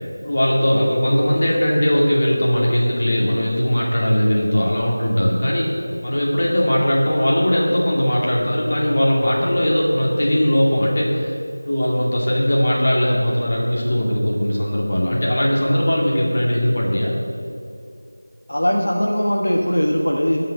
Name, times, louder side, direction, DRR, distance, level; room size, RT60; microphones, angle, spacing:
voice 1, 0.2-5.8 6.0-11.3 11.6-17.1, equal, 40° left, -4 dB, 2.5 m, -19 dB
voice 2, 18.5-20.4, equal, 65° left, -1 dB, 1.4 m, -20 dB
16.5 x 5.7 x 6.9 m, 2.6 s
figure-of-eight pair, 170°, 0 cm